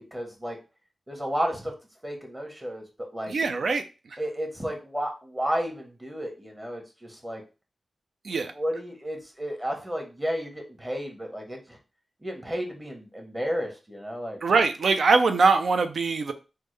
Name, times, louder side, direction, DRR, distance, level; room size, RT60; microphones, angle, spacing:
voice 1, 0.1-0.6 1.1-1.7 2.0-2.8 3.1-3.3 4.2-7.4 8.5-11.8 12.2-14.4, equal, 15° right, 1.1 m, -32 dB
voice 2, 3.3-3.8 8.2-8.5 14.4-16.3, right 4 dB, 75° right, 0.4 m, -22 dB
3.5 x 2.1 x 3.2 m
cardioid pair, 65°, 0 cm